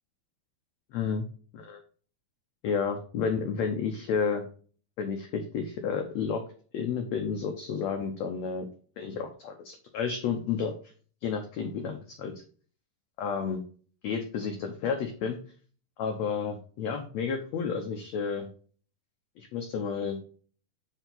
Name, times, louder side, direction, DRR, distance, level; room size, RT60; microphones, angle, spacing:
voice 1, 0.9-1.2 1.5-1.8 2.6-4.5 5.0-6.4 6.7-8.6 9.0-10.7 11.2-12.3 13.2-13.6 14.0-15.4 16.0-18.5 19.4-20.2, left 6 dB, 80° left, 4 dB, 1.5 m, -31 dB
7.6 x 4.6 x 3.9 m, 0.42 s
omnidirectional pair, 4.2 m